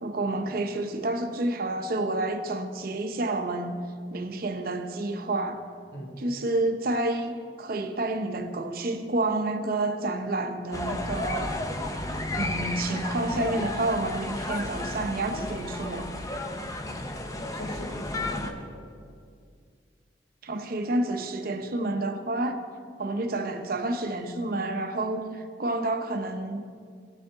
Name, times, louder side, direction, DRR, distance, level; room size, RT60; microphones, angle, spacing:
voice 1, 0.0-3.8 4.1-5.6 6.2-11.5 12.3-16.1 20.4-22.6 23.0-26.6, right 2 dB, 55° right, 0.8 m, -29 dB
voice 2, 5.9-6.2 17.0-18.9, left 1 dB, 80° left, 1.7 m, -41 dB
sound 1, 10.7-18.5, left 1 dB, 20° left, 0.7 m, -33 dB
17.0 x 6.6 x 3.5 m
head